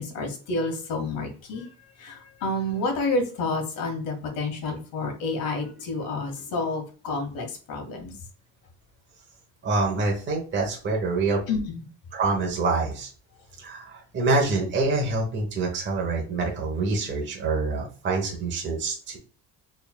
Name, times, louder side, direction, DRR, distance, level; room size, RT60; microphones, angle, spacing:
voice 1, 0.0-1.7 2.0-8.1 11.5-11.8, left 2 dB, 65° left, 3 dB, 1.6 m, -29 dB
voice 2, 9.6-11.4 12.1-13.1 13.6-19.2, right 3 dB, 30° right, 0 dB, 1.1 m, -26 dB
4.4 x 3.5 x 2.2 m, 0.39 s
cardioid pair, 135°, 36 cm